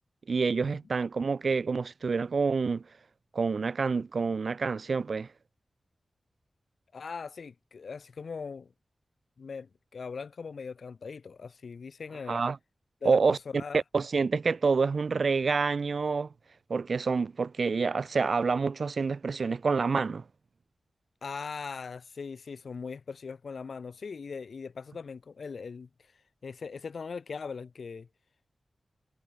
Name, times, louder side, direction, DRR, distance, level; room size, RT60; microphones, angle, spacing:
voice 1, 0.3-2.8 3.3-5.3 12.3-12.6 13.0-13.4 13.7-16.3 16.7-20.2, right 4 dB, 60° right, 0.5 m, -27 dB
voice 2, 6.9-8.7 9.4-12.4 13.0-13.8 21.2-25.9 26.4-28.1, left 5 dB, 70° left, 3.7 m, -40 dB
wide cardioid pair, 120°, 0 cm